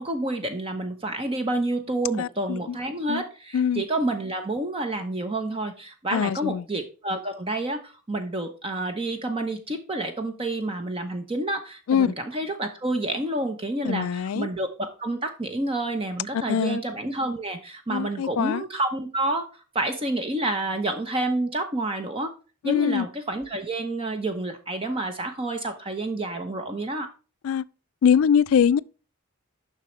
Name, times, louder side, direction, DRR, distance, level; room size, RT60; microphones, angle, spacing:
voice 1, 0.0-19.5 19.7-22.3 22.6-27.1, right 2 dB, 25° right, 0.7 m, -29 dB
voice 2, 2.2-2.8 3.1-3.2 3.5-3.8 6.1-6.6 11.9-12.1 13.8-14.5 16.3-16.8 17.9-18.6 22.6-23.1 27.4-27.6 28.0-28.8, left 7 dB, 65° left, 0.3 m, -23 dB
7.4 x 5.9 x 3.1 m
head